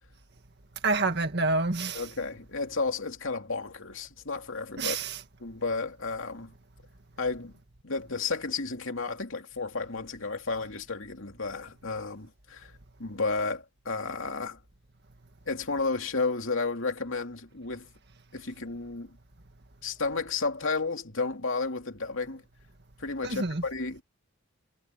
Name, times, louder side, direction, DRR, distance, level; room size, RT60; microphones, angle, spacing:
voice 1, 0.8-2.0 4.8-5.2 23.2-23.6, right 3 dB, 50° right, 1.9 m, -27 dB
voice 2, 1.9-5.0 5.4-6.5 7.2-7.5 7.8-12.7 13.0-14.6 15.5-17.9 18.3-19.2 19.8-22.4 23.0-24.0, left 3 dB, 60° left, 2.8 m, -32 dB
head